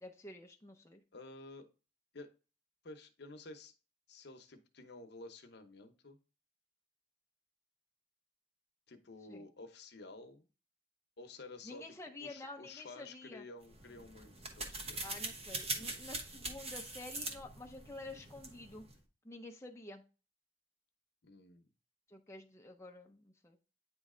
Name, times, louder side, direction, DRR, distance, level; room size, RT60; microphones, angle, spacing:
voice 1, 0.0-1.0 9.3-9.4 11.6-13.5 15.0-18.9 19.2-20.0 22.1-23.6, left 2 dB, 15° left, 2 dB, 0.6 m, -49 dB
voice 2, 1.1-1.7 2.1-2.3 2.8-3.7 4.1-6.2 8.9-10.5 11.2-11.9 12.2-15.4 15.7-16.1 21.2-21.7, left 2 dB, 65° left, 7 dB, 0.9 m, -52 dB
sound 1, 13.6-19.0, right 2 dB, 35° right, 1.0 m, -43 dB
9.0 x 3.2 x 3.7 m, 0.33 s
head